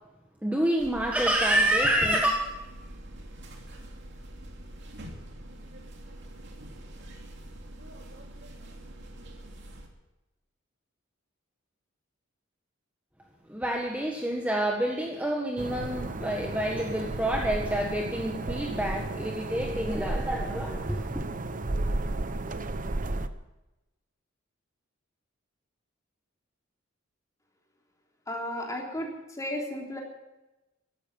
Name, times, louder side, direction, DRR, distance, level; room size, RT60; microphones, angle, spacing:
voice 1, 0.4-2.3 13.5-21.2, right 1 dB, 5° right, 0 dB, 1.5 m, -28 dB
sound 1, 0.8-9.9, right 1 dB, 60° right, 2.8 m, -45 dB
sound 2, 15.6-23.3, right 2 dB, 40° right, 0.8 m, -33 dB
voice 2, 28.3-30.0, left 1 dB, 15° left, -1 dB, 3.6 m, -34 dB
15.0 x 12.5 x 7.2 m, 0.99 s
head